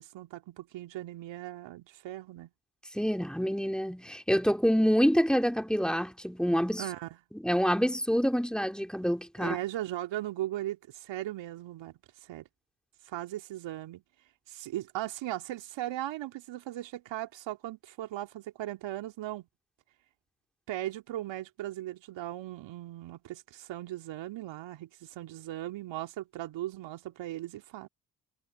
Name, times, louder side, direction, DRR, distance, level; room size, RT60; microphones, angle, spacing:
voice 1, 0.0-2.5 6.8-7.1 9.4-11.9 12.2-12.5 13.1-14.0 14.5-19.5 20.7-27.9, right 14 dB, 65° right, 2.3 m, -38 dB
voice 2, 2.9-6.8 7.3-9.6, equal, ahead, 3.4 m, -27 dB
hypercardioid pair, 45°, 47 cm